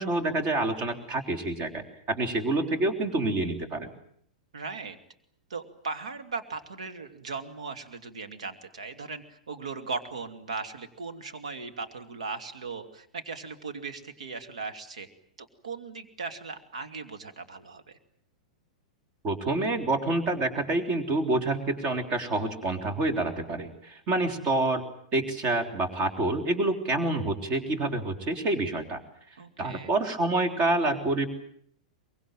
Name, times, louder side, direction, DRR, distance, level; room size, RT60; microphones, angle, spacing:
voice 1, 0.0-3.9 19.2-24.8 25.1-29.0 29.6-31.3, right 2 dB, 35° right, 7 dB, 3.5 m, -27 dB
voice 2, 4.5-5.0 5.5-15.1 15.4-18.0 29.4-29.9, right 4 dB, 65° right, 7 dB, 2.5 m, -38 dB
23.5 x 22.5 x 9.1 m, 0.66 s
figure-of-eight pair, 100°, 4 cm